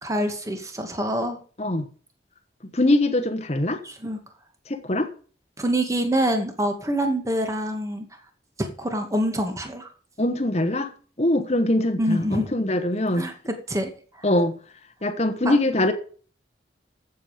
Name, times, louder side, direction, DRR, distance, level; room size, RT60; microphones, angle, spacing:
voice 1, 0.0-1.4 3.8-4.2 5.6-8.1 8.6-9.9 12.0-12.5 13.1-13.9 15.4-15.6, right 1 dB, 20° right, 5 dB, 2.1 m, -26 dB
voice 2, 2.7-3.8 4.7-5.1 10.2-10.9 11.2-13.3 14.2-14.6 15.0-15.9, left 1 dB, 40° left, 6 dB, 1.2 m, -22 dB
14.0 x 7.4 x 5.1 m, 0.41 s
head